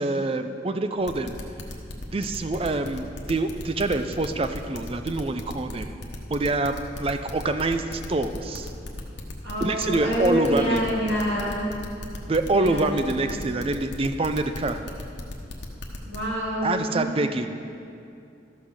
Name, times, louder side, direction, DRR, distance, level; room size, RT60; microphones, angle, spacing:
voice 1, 0.0-1.4 2.1-6.0 6.3-8.7 9.6-10.9 12.3-14.8 16.6-17.6, right 2 dB, 30° right, 8 dB, 0.5 m, -26 dB
sound 1, 1.1-16.2, left 1 dB, 70° left, 1.2 m, -36 dB
voice 2, 9.4-11.7 12.5-13.3 16.0-17.1, equal, 60° right, -5 dB, 2.7 m, -27 dB
13.0 x 5.8 x 6.4 m, 2.6 s
head